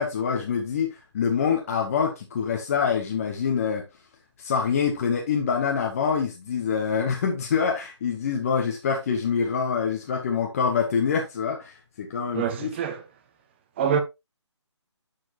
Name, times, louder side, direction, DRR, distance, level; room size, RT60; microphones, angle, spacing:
voice 1, 0.0-3.8 4.4-12.7, left 6 dB, 30° left, 1.3 m, -25 dB
voice 2, 12.3-13.0 13.8-14.0, right 7 dB, 20° right, 1.0 m, -25 dB
11.0 x 4.7 x 3.1 m
figure-of-eight pair, 155°, 15 cm